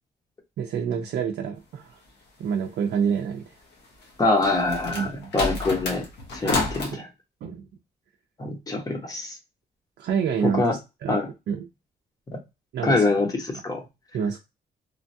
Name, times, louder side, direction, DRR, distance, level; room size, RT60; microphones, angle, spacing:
voice 1, 0.6-2.0 2.4-3.4 4.9-5.6 6.4-6.6 6.9-7.0 7.4-7.7 10.0-10.7 11.0-11.2 11.5-11.7 12.7-13.0 14.1-14.4, right 7 dB, 70° right, 0.4 m, -27 dB
sound 1, 4.0-6.9, left 2 dB, 80° left, 0.9 m, -29 dB
voice 2, 4.2-6.0 6.3-7.1 8.4-9.4 10.4-10.7 11.1-11.3 12.3-12.4 12.8-13.8, left 2 dB, 20° left, 0.8 m, -24 dB
3.1 x 2.2 x 2.6 m
wide cardioid pair, 150°, 18 cm